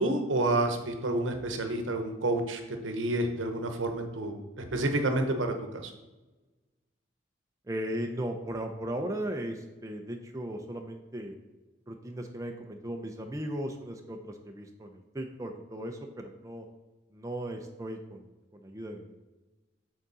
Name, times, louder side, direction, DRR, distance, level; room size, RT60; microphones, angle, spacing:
voice 1, 0.0-5.9, right 2 dB, 80° right, 6 dB, 0.8 m, -29 dB
voice 2, 7.7-11.3 11.9-16.6 17.1-19.2, right 1 dB, 15° right, 3 dB, 0.4 m, -37 dB
8.0 x 3.7 x 4.0 m, 1.1 s
head